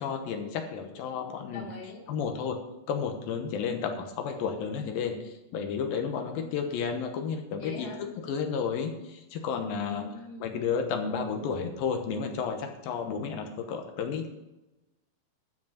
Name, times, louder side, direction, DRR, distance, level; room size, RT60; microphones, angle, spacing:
voice 1, 0.0-1.7 2.1-2.6 2.9-10.0 10.4-14.3, left 6 dB, 75° left, 5 dB, 2.7 m, -32 dB
voice 2, 1.5-2.0 7.5-8.0 9.8-10.6, left 4 dB, 50° left, -1 dB, 2.2 m, -42 dB
12.0 x 5.4 x 7.2 m, 0.99 s
omnidirectional pair, 4.4 m